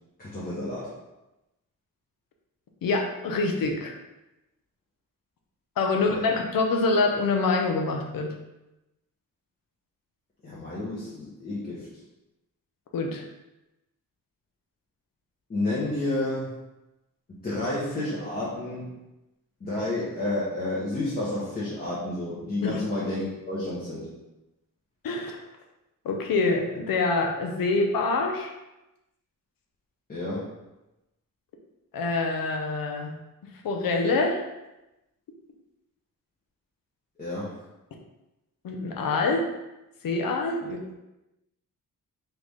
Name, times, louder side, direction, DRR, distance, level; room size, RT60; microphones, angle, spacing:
voice 1, 0.2-0.9 6.1-6.3 10.4-11.9 15.5-16.5 17.4-18.9 19.6-24.1 30.1-30.5 37.2-37.6 40.6-40.7, left 2 dB, 25° left, -9 dB, 0.9 m, -30 dB
voice 2, 2.8-3.9 5.8-8.3 12.9-13.2 22.6-22.8 25.0-25.4 26.0-28.5 31.9-33.1 33.6-34.4 38.6-39.5 40.0-40.8, left 3 dB, 85° left, 2 dB, 0.8 m, -25 dB
4.0 x 3.3 x 3.5 m, 0.97 s
wide cardioid pair, 170°, 34 cm